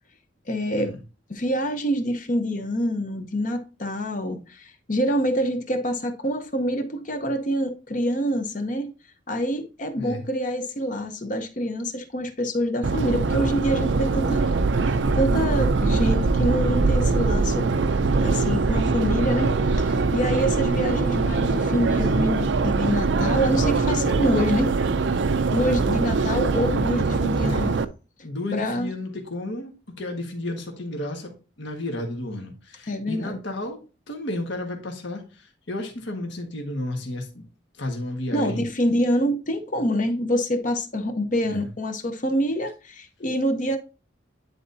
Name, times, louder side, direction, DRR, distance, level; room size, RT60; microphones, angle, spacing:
voice 1, 0.5-0.9 1.3-8.9 9.3-14.4 14.8-17.7 18.2-24.7 25.5-27.8 28.5-28.9 32.9-33.4 38.3-43.8, equal, 40° left, 0.8 m, -26 dB
Subway metro underground, 12.8-27.8, right 4 dB, 65° right, 0.5 m, -22 dB
voice 2, 18.4-19.0 27.4-27.8 28.2-33.8 34.1-37.4 37.8-38.6 41.4-41.7, left 1 dB, 70° left, 1.6 m, -32 dB
10.0 x 4.0 x 2.7 m
head